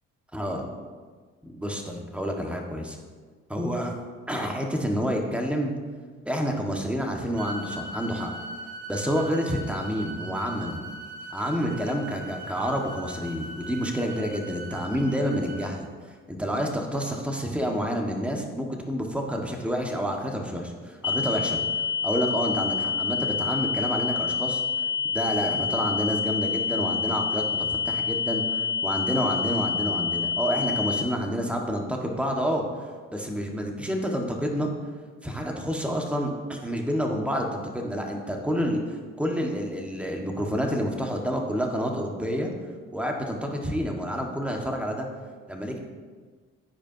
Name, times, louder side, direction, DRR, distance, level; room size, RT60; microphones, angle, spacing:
voice 1, 0.3-0.6 1.4-3.0 3.5-3.9 4.3-5.7 6.2-8.3 8.9-10.8 11.3-21.6 22.0-24.6 25.0-27.4 27.8-32.6 33.1-34.7 35.2-38.8 39.2-42.5 42.9-45.1 45.5-45.8, equal, 5° right, 1 dB, 1.7 m, -28 dB
sound 1, 7.4-15.7, right 1 dB, 60° right, 2.4 m, -40 dB
sound 2, 21.0-31.0, left 5 dB, 35° left, 0.5 m, -27 dB
14.0 x 5.1 x 2.9 m, 1.5 s
hypercardioid pair, 45°, 33 cm